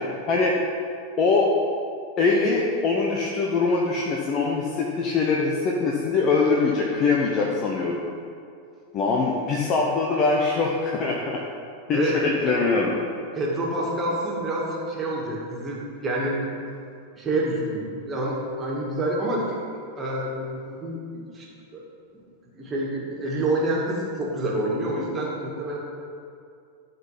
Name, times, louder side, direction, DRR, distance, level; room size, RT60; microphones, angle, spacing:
voice 1, 1.2-1.5 2.2-8.0 8.9-11.4 11.9-13.0, left 4 dB, 35° left, -2 dB, 0.9 m, -23 dB
voice 2, 11.9-12.5 13.3-16.4 17.2-19.6 20.0-21.5 21.7-21.8 22.5-25.8, right 1 dB, 20° right, -3 dB, 2.2 m, -27 dB
12.5 x 4.3 x 5.8 m, 2.4 s
figure-of-eight pair, 90°, 0 cm